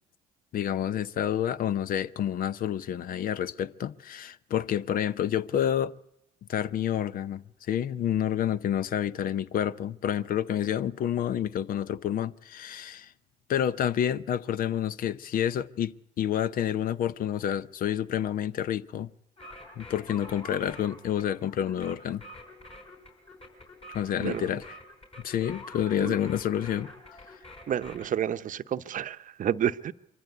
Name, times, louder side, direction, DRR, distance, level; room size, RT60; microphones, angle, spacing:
voice 1, 0.5-5.9 6.5-13.1 13.5-19.1 19.8-22.2 23.9-24.8 25.2-26.9, left 10 dB, 60° left, 0.7 m, -29 dB
sound 1, 19.4-28.1, left 1 dB, 35° left, 5.1 m, -47 dB
voice 2, 27.7-29.9, right 9 dB, 55° right, 0.8 m, -30 dB
23.5 x 14.5 x 8.2 m
supercardioid pair, 65°, 16 cm